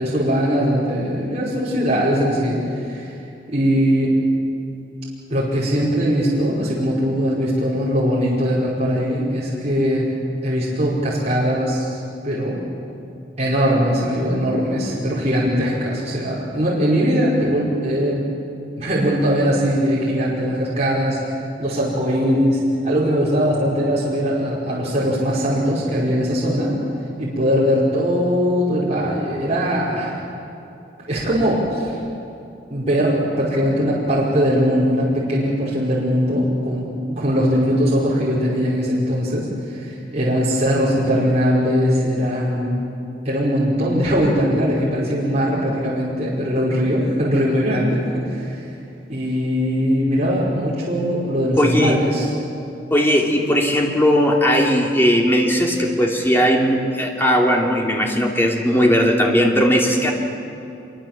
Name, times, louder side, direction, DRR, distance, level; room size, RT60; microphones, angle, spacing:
voice 1, 0.0-3.2 3.5-4.1 5.3-10.1 10.4-11.9 12.2-12.6 13.4-18.3 18.8-26.7 27.2-30.2 31.1-32.0 32.7-42.7 43.3-48.7 49.1-52.3, equal, 35° right, -7 dB, 5.3 m, -20 dB
voice 2, 51.6-52.0 52.9-60.1, equal, 10° left, 0 dB, 2.8 m, -18 dB
26.0 x 23.5 x 7.5 m, 2.7 s
head